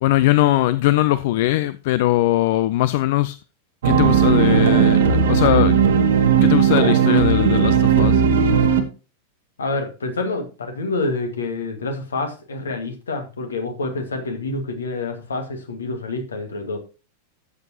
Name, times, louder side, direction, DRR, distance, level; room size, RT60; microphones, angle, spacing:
voice 1, 0.0-3.4 3.8-5.8 6.4-8.2, left 15 dB, 50° left, 0.4 m, -20 dB
sound 1, 3.8-8.8, right 7 dB, 60° right, 1.3 m, -16 dB
voice 2, 9.6-16.8, left 3 dB, 70° left, 1.8 m, -27 dB
13.0 x 7.6 x 2.9 m
figure-of-eight pair, 90°, 0 cm